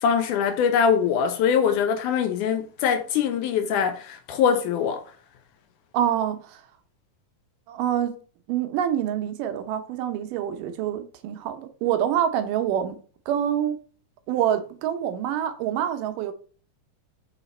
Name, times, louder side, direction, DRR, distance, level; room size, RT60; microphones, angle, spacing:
voice 1, 0.0-5.0, left 7 dB, 80° left, 2.0 m, -23 dB
voice 2, 5.9-6.6 7.7-8.1 8.5-13.0 13.3-13.8 14.3-16.3, right 10 dB, 80° right, 2.3 m, -26 dB
5.7 x 4.0 x 4.2 m
omnidirectional pair, 3.9 m